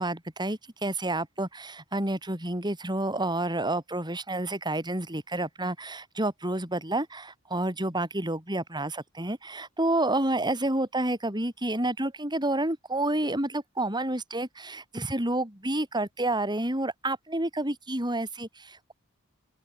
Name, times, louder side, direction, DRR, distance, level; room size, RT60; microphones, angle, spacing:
voice 1, 0.0-18.9, right 1 dB, 20° right, 7.5 m, -29 dB
open air
head